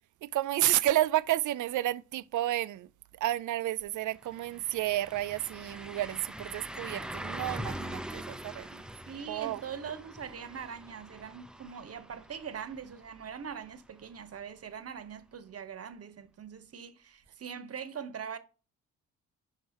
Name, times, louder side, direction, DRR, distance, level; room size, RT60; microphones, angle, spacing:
voice 1, 0.2-2.9 3.2-8.8 9.3-9.6, right 14 dB, 60° right, 0.5 m, -31 dB
sound 1, 3.8-3.9 4.2-14.0 14.4-14.5 17.3-17.4, equal, ahead, 0.4 m, -43 dB
voice 2, 9.1-18.4, right 7 dB, 45° right, 0.9 m, -42 dB
5.5 x 4.5 x 4.2 m
supercardioid pair, 65°, 34 cm